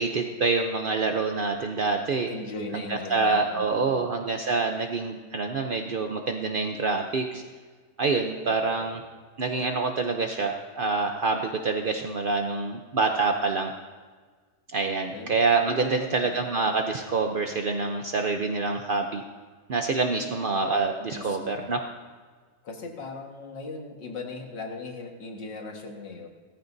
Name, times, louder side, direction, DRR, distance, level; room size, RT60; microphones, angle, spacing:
voice 1, 0.0-2.3 2.7-7.4 8.0-9.0 9.4-13.7 14.7-19.2 19.7-21.8, right 4 dB, 60° right, 3 dB, 0.5 m, -26 dB
voice 2, 2.3-4.1 8.5-9.0 15.1-16.4 20.2-20.3 21.1-21.7 22.6-26.3, left 3 dB, 80° left, 1 dB, 2.3 m, -39 dB
18.0 x 14.0 x 2.7 m, 1.5 s
omnidirectional pair, 1.9 m